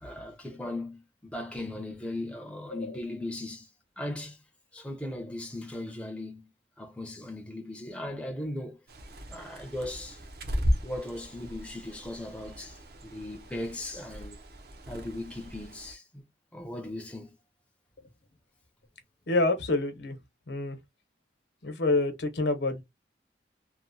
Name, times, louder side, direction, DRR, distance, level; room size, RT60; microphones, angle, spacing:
voice 1, 0.0-3.7 4.0-4.4 4.7-6.5 6.8-8.8 9.3-10.2 10.8-14.4 14.9-16.2 16.5-17.4, left 1 dB, 5° left, 0.5 m, -38 dB
Bird, 8.9-15.9, equal, 55° right, 0.6 m, -36 dB
voice 2, 19.3-20.2 20.5-20.8 21.6-22.8, left 2 dB, 75° left, 0.8 m, -27 dB
2.9 x 2.1 x 2.6 m
head